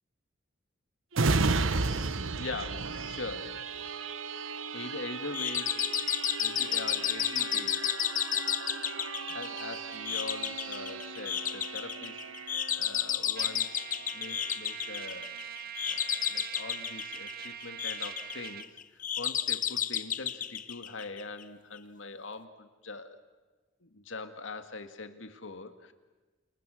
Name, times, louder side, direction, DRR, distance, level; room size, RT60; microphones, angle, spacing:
sound 1, 1.1-14.4 14.9-15.0, right 4 dB, 85° right, 1.2 m, -35 dB
voice 1, 2.0-3.6 4.7-5.8 6.4-7.8 9.3-12.3 12.7-13.9 14.1-15.3 15.8-23.2 23.8-25.9, left 3 dB, 70° left, 8 dB, 2.0 m, -42 dB
sound 2, 5.3-21.4, left 10 dB, 40° left, 0.9 m, -32 dB
Trumpet, 13.4-18.7, right 9 dB, 50° right, 0.9 m, -43 dB
29.5 x 28.0 x 6.5 m, 1.3 s
head